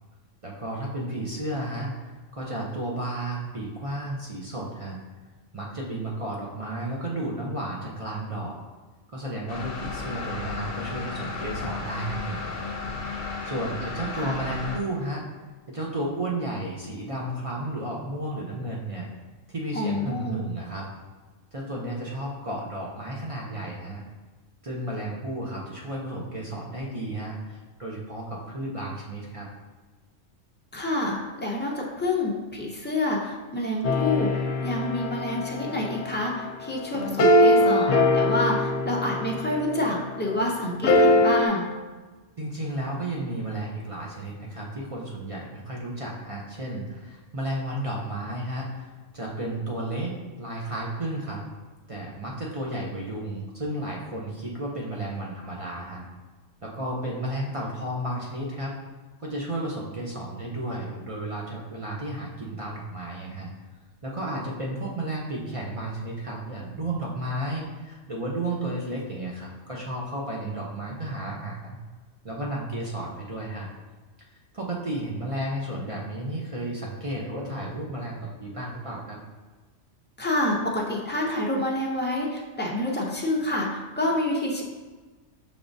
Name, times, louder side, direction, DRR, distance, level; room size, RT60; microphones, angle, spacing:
voice 1, 0.4-1.9 2.3-5.0 5.5-8.6 9.1-12.4 13.1-15.2 15.7-19.1 19.5-20.9 21.5-24.0 24.6-29.5 42.4-50.1 50.4-51.4 51.9-56.1 56.6-58.7 59.2-63.5 64.0-71.8 72.2-73.7 74.5-79.2, right 1 dB, 40° right, -3 dB, 0.5 m, -33 dB
sound 1, 9.5-14.8, left 4 dB, 55° left, 0.8 m, -33 dB
voice 2, 19.7-20.4 30.7-41.7 80.2-83.7 84.0-84.6, left 1 dB, 15° left, -2 dB, 0.3 m, -28 dB
sound 2, 33.8-40.1 40.8-41.5, left 1 dB, 90° left, 1.0 m, -22 dB
5.9 x 3.5 x 2.6 m, 1.3 s
omnidirectional pair, 1.3 m